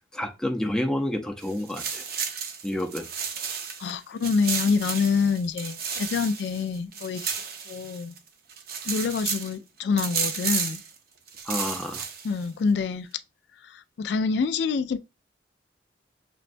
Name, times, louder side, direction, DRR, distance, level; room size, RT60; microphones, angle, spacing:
voice 1, 0.1-2.0 2.6-3.1 11.4-12.1, left 1 dB, 5° left, 0.5 m, -29 dB
sound 1, 1.4-3.9 4.2-8.2 8.5-9.5 10.0-10.9 11.3-12.4, right 6 dB, 60° right, 0.6 m, -32 dB
voice 2, 3.8-7.3 7.7-8.1 8.9-10.8 12.2-13.1 13.6-15.0, left 5 dB, 70° left, 0.3 m, -26 dB
6.1 x 2.2 x 2.5 m
head